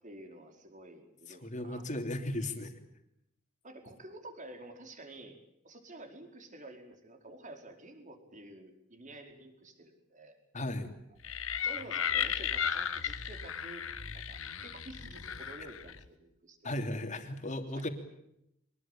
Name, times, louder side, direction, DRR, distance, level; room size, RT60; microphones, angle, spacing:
voice 1, 0.0-2.0 3.6-5.4 5.6-10.4 11.6-13.8 14.1-16.6 17.8-17.9, right 1 dB, 40° right, 4 dB, 4.7 m, -50 dB
voice 2, 1.3-2.7 10.5-10.9 16.6-17.9, left 1 dB, 35° left, 6 dB, 3.2 m, -36 dB
sound 1, 11.2-16.1, left 8 dB, 90° left, 1.5 m, -35 dB
24.5 x 21.0 x 9.0 m, 0.80 s
head